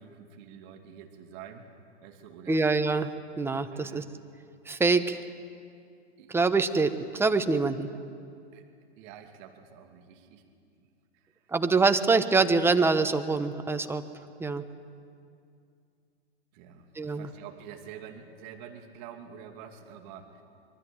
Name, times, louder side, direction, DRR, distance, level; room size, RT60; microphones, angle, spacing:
voice 1, 0.0-1.7 2.0-2.6 3.7-4.1 6.2-6.3 8.5-8.7 9.0-10.4 16.5-20.4, right 8 dB, 45° right, 4 dB, 2.6 m, -47 dB
voice 2, 2.5-4.0 4.7-5.2 6.3-7.9 11.5-14.0 14.4-14.6 17.0-17.3, right 4 dB, 5° right, 8 dB, 1.2 m, -25 dB
24.5 x 22.5 x 9.0 m, 2.4 s
hypercardioid pair, 115°, 33 cm